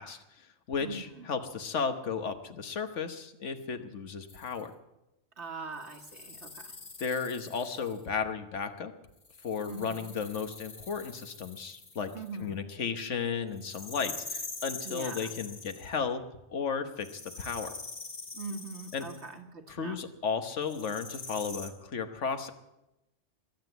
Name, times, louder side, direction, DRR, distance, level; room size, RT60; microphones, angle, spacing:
voice 1, 0.0-4.7 7.0-8.9 9.4-12.1 12.4-16.2 16.5-17.7 18.9-19.1 19.7-22.5, left 5 dB, 80° left, 8 dB, 1.4 m, -34 dB
voice 2, 0.8-1.3 5.4-6.7 9.7-10.1 12.1-12.6 14.9-15.3 18.3-20.0, right 4 dB, 70° right, 5 dB, 1.8 m, -42 dB
sound 1, 4.3-4.6 5.8-8.1 9.2-12.4 13.6-16.0 17.0-19.3 20.6-21.7, left 3 dB, 45° left, 1.6 m, -44 dB
22.5 x 7.9 x 8.1 m, 0.96 s
omnidirectional pair, 1.2 m